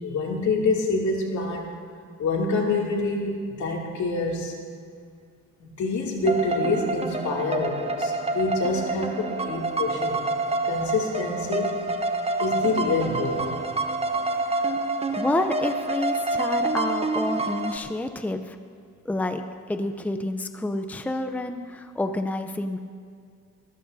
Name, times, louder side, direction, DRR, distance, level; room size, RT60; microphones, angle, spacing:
voice 1, 0.0-1.7 2.2-4.5 5.8-10.3 10.6-11.8 12.4-13.7, left 3 dB, 70° left, -1 dB, 2.7 m, -26 dB
sound 1, 6.3-17.8, right 2 dB, 20° right, 0.9 m, -27 dB
voice 2, 14.5-14.9 15.1-18.6 19.0-22.8, left 2 dB, 5° left, 7 dB, 0.6 m, -29 dB
22.0 x 14.0 x 2.8 m, 2.2 s
cardioid pair, 90°, 30 cm